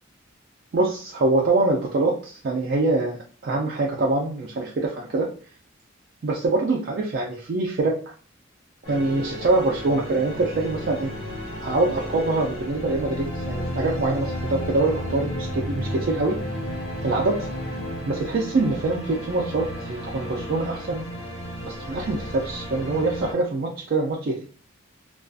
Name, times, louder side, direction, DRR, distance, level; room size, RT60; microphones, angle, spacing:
voice 1, 0.7-5.3 6.2-8.0 8.9-11.1 11.6-16.4 17.0-17.5 18.1-21.1 21.6-24.4, right 2 dB, 50° right, -2 dB, 0.3 m, -24 dB
sound 1, 8.8-23.3, equal, 75° left, 1.2 m, -32 dB
2.5 x 2.3 x 2.3 m, 0.41 s
head